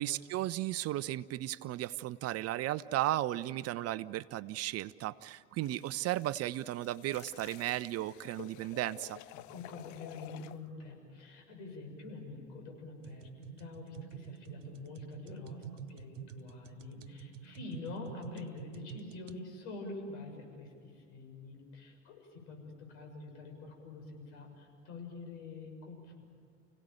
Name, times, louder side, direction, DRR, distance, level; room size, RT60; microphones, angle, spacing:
voice 1, 0.0-9.2, right 15 dB, 40° right, 16 dB, 0.7 m, -35 dB
sound 1, 5.6-10.6, left 18 dB, 50° left, 0.6 m, -52 dB
voice 2, 9.3-26.3, left 3 dB, 65° left, 3 dB, 6.8 m, -46 dB
sound 2, 13.0-19.4, right 11 dB, 85° right, 0.7 m, -48 dB
29.5 x 17.0 x 9.1 m, 2.4 s
hypercardioid pair, 75°, 37 cm